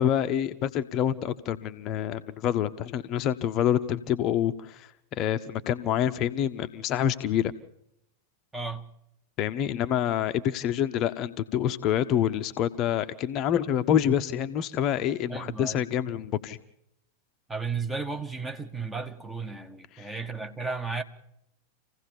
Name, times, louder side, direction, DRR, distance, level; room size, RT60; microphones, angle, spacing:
voice 1, 0.0-7.5 9.4-16.6 19.9-20.1, left 10 dB, 35° left, 0.8 m, -27 dB
voice 2, 8.5-8.9 15.3-15.8 17.5-21.0, right 4 dB, 10° right, 1.3 m, -34 dB
26.5 x 16.0 x 7.0 m
figure-of-eight pair, 90°, 0 cm